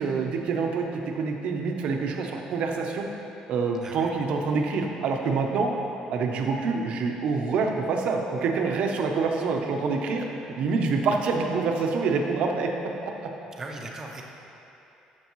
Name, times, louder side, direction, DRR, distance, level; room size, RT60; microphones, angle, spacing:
voice 1, 0.0-3.1 3.5-5.7 6.1-10.3 10.6-12.7 13.0-13.3, right 4 dB, 55° right, 2 dB, 0.8 m, -26 dB
voice 2, 3.8-4.1 13.6-14.2, right 2 dB, 20° right, 1 dB, 0.7 m, -38 dB
12.5 x 6.3 x 3.1 m, 2.9 s
cardioid pair, 170°, 2 cm